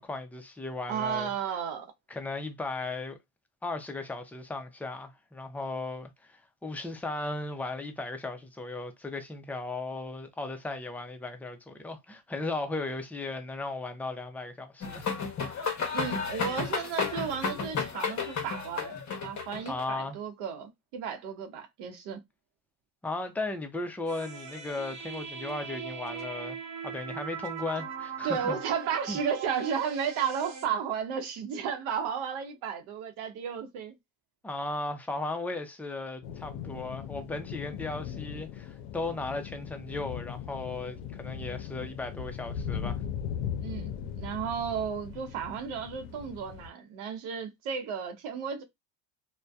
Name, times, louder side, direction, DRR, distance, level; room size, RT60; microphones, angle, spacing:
voice 1, 0.0-1.3 2.1-3.2 3.6-15.2 19.7-20.2 23.0-26.6 26.8-28.6 29.1-29.2 34.4-43.0, left 2 dB, 5° left, 0.3 m, -36 dB
voice 2, 0.9-1.9 15.9-19.0 19.2-22.2 28.2-34.0 43.6-43.9 44.2-48.6, right 7 dB, 75° right, 0.7 m, -33 dB
sound 1, 14.8-19.8, left 5 dB, 35° left, 0.8 m, -32 dB
sound 2, 24.1-30.7, right 7 dB, 35° right, 0.8 m, -40 dB
sound 3, 36.2-46.7, left 8 dB, 90° left, 0.5 m, -38 dB
2.5 x 2.1 x 2.3 m
supercardioid pair, 90°, 49 cm